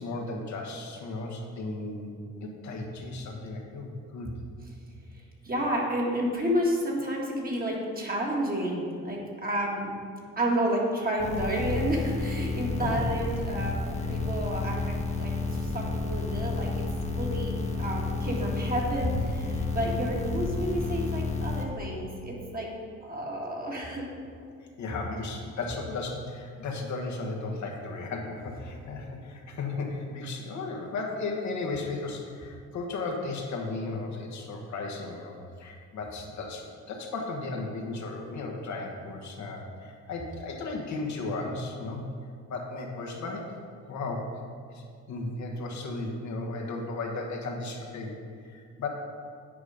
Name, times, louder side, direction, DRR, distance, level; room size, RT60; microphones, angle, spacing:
voice 1, 0.0-4.3 12.8-13.1 24.8-42.0 42.5-43.5 43.9-44.4 44.7-48.2 48.5-48.9, left 3 dB, 70° left, 0 dB, 1.4 m, -35 dB
voice 2, 5.4-10.0 10.4-16.9 17.1-22.7 23.0-24.0, equal, 30° right, -2 dB, 1.8 m, -30 dB
sound 1, 11.2-21.6, left 3 dB, 20° left, 1.1 m, -31 dB
9.3 x 5.0 x 5.0 m, 2.2 s
cardioid pair, 90°, 30 cm